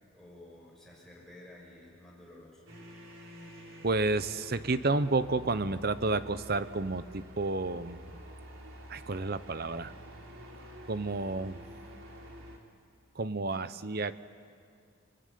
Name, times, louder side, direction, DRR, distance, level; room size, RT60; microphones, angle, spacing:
voice 1, 0.1-2.6, left 1 dB, ahead, -4 dB, 6.9 m, -52 dB
sound 1, 2.7-12.6, equal, 75° right, 3.6 m, -48 dB
voice 2, 3.8-8.1 8.9-9.9 10.9-11.6 13.2-14.1, right 3 dB, 45° right, 13 dB, 0.8 m, -30 dB
28.5 x 20.5 x 9.4 m, 2.2 s
head